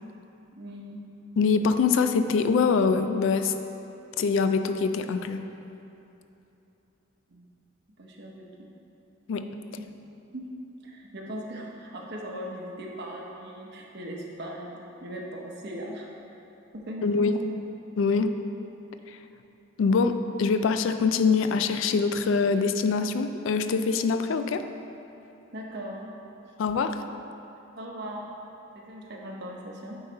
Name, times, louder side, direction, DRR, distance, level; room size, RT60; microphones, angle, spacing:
voice 1, 0.5-1.0 7.3-7.4 8.0-8.7 10.3-10.5 10.8-16.1 16.7-17.5 25.5-26.1 27.8-28.3 28.7-30.0, equal, 55° right, -1 dB, 0.8 m, -39 dB
voice 2, 1.4-3.5 4.2-5.5 9.3-9.5 17.0-17.6 18.0-18.3 19.1-19.2 19.8-24.6 26.6-27.0, left 5 dB, 70° left, 9 dB, 0.3 m, -24 dB
8.7 x 4.0 x 4.0 m, 2.9 s
head